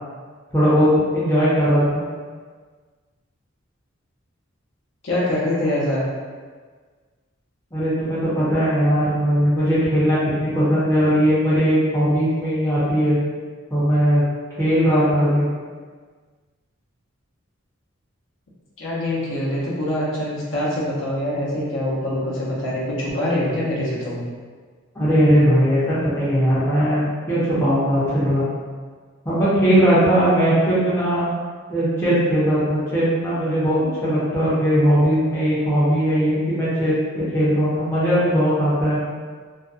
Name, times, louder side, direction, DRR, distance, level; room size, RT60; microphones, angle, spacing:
voice 1, 0.5-2.0 7.7-13.2 13.7-14.2 14.6-15.5 24.9-28.4 29.2-31.3 31.7-39.0, equal, 15° left, -10 dB, 0.7 m, -19 dB
voice 2, 5.0-6.0 18.8-24.2, left 1 dB, 65° left, -7 dB, 0.7 m, -24 dB
2.5 x 2.2 x 2.4 m, 1.5 s
head